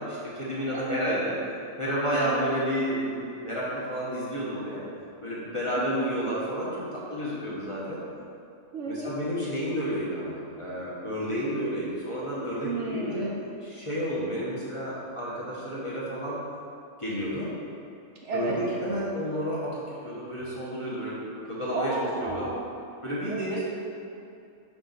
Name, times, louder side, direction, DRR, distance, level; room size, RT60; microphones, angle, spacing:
voice 1, 0.0-1.4 1.8-3.1 3.4-4.9 5.2-8.0 8.9-13.3 13.6-16.4 17.0-17.5 18.3-21.2 21.5-22.5 23.0-23.6, equal, 25° left, -8 dB, 0.9 m, -31 dB
voice 2, 0.7-1.2 2.1-2.5 5.8-6.2 8.7-9.1 12.6-13.4 18.2-18.6 21.7-22.6 23.3-23.7, right 3 dB, 65° right, -2 dB, 0.8 m, -33 dB
6.0 x 4.3 x 4.0 m, 2.6 s
omnidirectional pair, 1.5 m